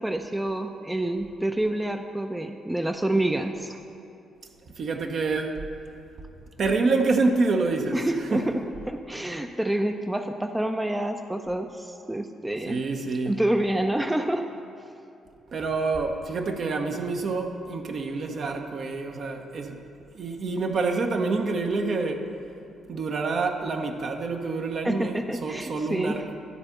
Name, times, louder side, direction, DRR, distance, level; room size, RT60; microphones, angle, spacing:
voice 1, 0.0-3.8 7.9-12.8 13.3-14.5 24.8-26.2, right 1 dB, 10° right, 6 dB, 0.5 m, -28 dB
voice 2, 4.7-5.6 6.6-8.0 8.3-8.4 12.7-13.4 15.5-19.8 20.1-22.3 22.9-26.3, right 3 dB, 55° right, 4 dB, 0.8 m, -27 dB
11.0 x 4.3 x 6.4 m, 2.6 s
hypercardioid pair, 40°, 0 cm